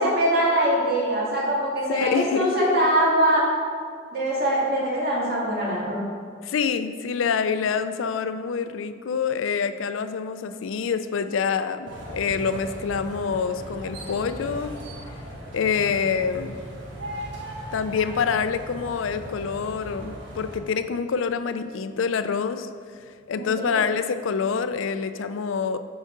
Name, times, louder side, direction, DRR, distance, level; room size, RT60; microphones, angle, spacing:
voice 1, 0.0-3.4 4.1-6.0 23.4-23.8, right 1 dB, 55° right, -5 dB, 2.0 m, -23 dB
voice 2, 1.9-2.5 6.4-14.7 15.5-16.6 17.7-22.7 23.3-25.8, left 6 dB, 90° left, 10 dB, 0.4 m, -26 dB
sound 1, 11.9-20.6, equal, 70° right, 1.4 m, -38 dB
8.8 x 5.2 x 3.8 m, 2.1 s
head